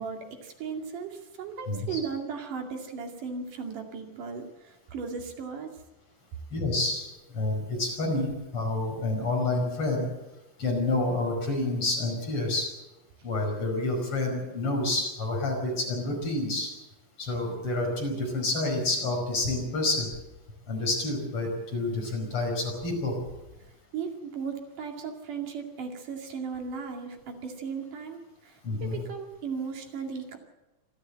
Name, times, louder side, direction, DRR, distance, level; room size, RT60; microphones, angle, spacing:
voice 1, 0.0-5.7 23.9-30.4, right 5 dB, 85° right, 3 dB, 3.9 m, -36 dB
voice 2, 1.7-2.0 6.5-7.1 7.3-8.3 8.5-10.1 10.6-12.7 13.2-16.7 17.2-20.1 20.7-23.1 28.6-29.0, left 2 dB, 45° left, 1 dB, 6.2 m, -28 dB
25.5 x 13.5 x 7.6 m, 1.0 s
omnidirectional pair, 3.6 m